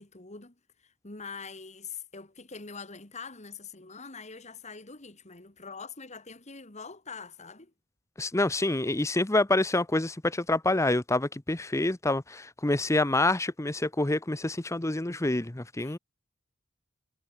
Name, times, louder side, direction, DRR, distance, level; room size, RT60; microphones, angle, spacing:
voice 1, 0.0-7.7 15.8-16.0, left 5 dB, 35° left, 2.7 m, -44 dB
voice 2, 8.2-16.0, left 2 dB, 15° left, 0.8 m, -27 dB
head